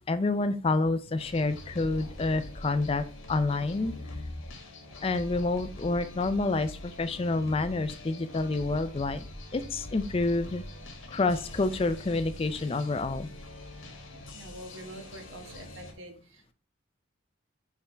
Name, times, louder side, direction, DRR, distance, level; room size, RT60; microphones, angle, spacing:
voice 1, 0.1-4.3 5.0-9.2 9.5-10.6 11.1-13.3, left 3 dB, 25° left, 11 dB, 0.4 m, -28 dB
sound 1, 1.2-15.9, left 1 dB, 80° left, 1.4 m, -44 dB
voice 2, 14.3-16.5, right 1 dB, 70° right, 5 dB, 1.3 m, -46 dB
6.7 x 3.5 x 4.3 m, 0.38 s
head